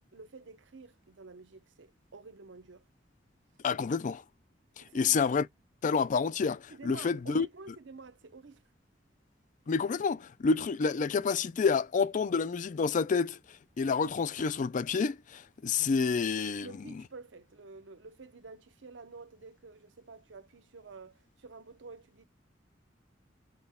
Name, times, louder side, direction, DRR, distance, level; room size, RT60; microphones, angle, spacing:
voice 1, 0.1-2.8 4.8-5.1 6.7-8.6 16.6-22.2, right 4 dB, 70° right, 0.7 m, -50 dB
voice 2, 3.6-4.2 4.8-5.5 5.8-7.5 9.7-13.4 13.8-16.7, left 5 dB, 45° left, 0.4 m, -28 dB
5.9 x 2.3 x 3.6 m
head